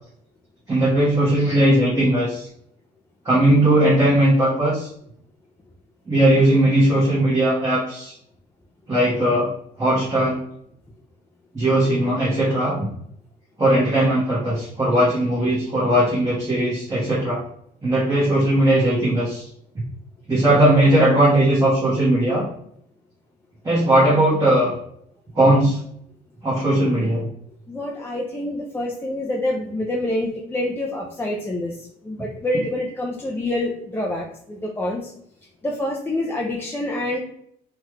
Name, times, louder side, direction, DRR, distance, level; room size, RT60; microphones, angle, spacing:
voice 1, 0.7-2.5 3.2-4.9 6.1-8.1 8.9-9.5 9.8-10.4 11.5-12.9 13.6-17.4 17.8-19.4 20.3-22.4 23.6-24.7 25.3-25.8 26.4-27.3, right 1 dB, 20° right, -8 dB, 1.1 m, -18 dB
voice 2, 27.7-31.8 32.0-35.1 35.6-37.2, left 1 dB, 15° left, -2 dB, 0.4 m, -26 dB
3.1 x 2.3 x 3.1 m, 0.71 s
cardioid pair, 110°, 17 cm